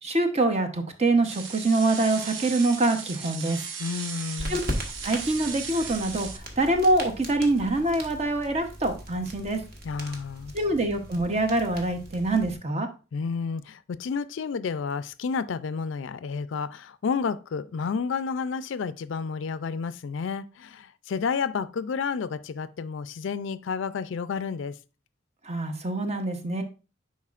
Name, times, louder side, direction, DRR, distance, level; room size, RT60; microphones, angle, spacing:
voice 1, 0.0-3.6 4.5-4.6 5.0-9.6 10.5-12.9 25.4-26.6, right 2 dB, 35° right, 0.8 m, -25 dB
sound 1, 1.2-6.4, right 6 dB, 75° right, 0.9 m, -37 dB
voice 2, 3.8-4.6 9.8-10.5 13.1-24.8, left 5 dB, 70° left, 0.4 m, -31 dB
sound 2, 4.4-12.5, equal, 50° right, 1.4 m, -38 dB
9.9 x 4.2 x 2.4 m
head